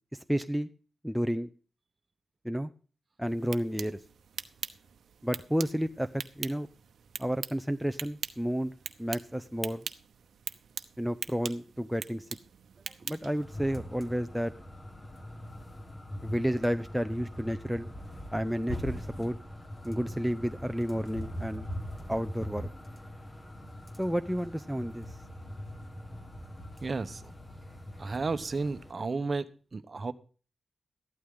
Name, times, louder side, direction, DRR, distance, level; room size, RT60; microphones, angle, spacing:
voice 1, 0.1-0.7 1.0-1.5 2.4-2.7 3.2-4.0 5.2-6.1 6.4-6.7 7.2-8.7 9.0-9.8 11.0-12.2 13.0-14.5 16.2-17.9 18.3-19.4 19.8-21.7 22.1-22.7 24.0-25.1, equal, ahead, 7 dB, 0.6 m, -31 dB
sound 1, 3.3-13.4, right 7 dB, 85° right, 0.9 m, -42 dB
sound 2, 13.4-28.9, equal, 20° left, 1.7 m, -42 dB
voice 2, 26.8-27.2 28.0-29.4 29.7-30.1, right 4 dB, 35° right, 11 dB, 1.1 m, -32 dB
14.5 x 12.0 x 3.8 m, 0.38 s
wide cardioid pair, 135°, 0 cm